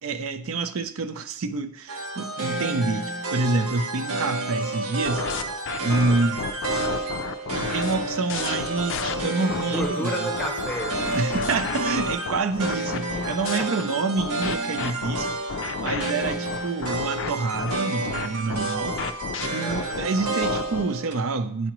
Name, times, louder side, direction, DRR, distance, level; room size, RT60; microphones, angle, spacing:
voice 1, 0.0-5.3 5.8-6.5 7.5-10.1 11.1-19.1 19.5-21.7, right 3 dB, 75° right, 0.5 m, -27 dB
sound 1, 1.9-21.1, right 2 dB, 90° right, 0.9 m, -30 dB
sound 2, 5.0-9.9 10.3-13.6 14.2-20.9, left 6 dB, 55° left, 0.3 m, -32 dB
voice 2, 9.6-11.4 13.4-13.9 15.1-15.4 19.6-20.0, equal, 5° left, 0.8 m, -34 dB
9.1 x 4.9 x 3.0 m
head